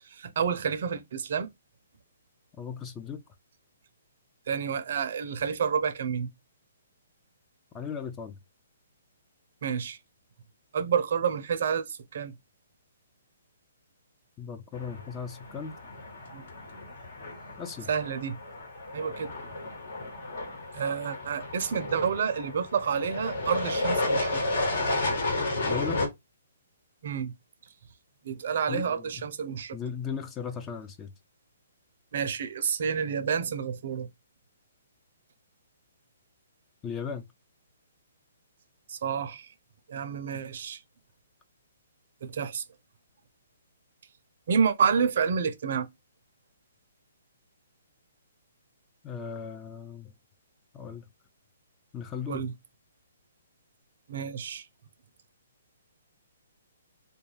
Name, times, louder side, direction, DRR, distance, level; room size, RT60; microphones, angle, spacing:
voice 1, 0.0-1.5 4.5-6.3 9.6-10.0 10.7-12.3 16.3-16.5 17.9-18.4 18.9-19.3 20.7-24.4 27.0-27.3 28.2-29.8 32.1-34.1 38.9-39.5 39.9-40.8 42.2-42.6 44.5-45.9 52.3-52.5 54.1-54.6, right 7 dB, 60° right, 0.5 m, -29 dB
voice 2, 2.6-3.2 7.7-8.3 14.4-15.7 17.6-17.9 25.6-26.0 28.7-29.2 29.7-31.1 36.8-37.2 49.0-50.1 50.7-51.1 51.9-52.4, left 6 dB, 20° left, 0.4 m, -37 dB
sound 1, 14.7-26.1, left 2 dB, 65° left, 1.1 m, -32 dB
2.3 x 2.2 x 3.1 m
hypercardioid pair, 145°, 0 cm